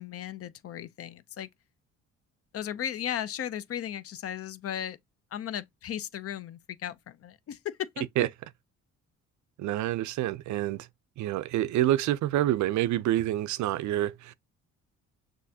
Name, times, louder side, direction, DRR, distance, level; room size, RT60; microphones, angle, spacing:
voice 1, 0.0-1.5 2.5-5.0 5.3-8.0, left 10 dB, 50° left, 0.5 m, -36 dB
voice 2, 9.6-10.9 11.2-14.3, right 13 dB, 70° right, 0.5 m, -27 dB
6.3 x 2.6 x 2.7 m
cardioid pair, 90°, 30 cm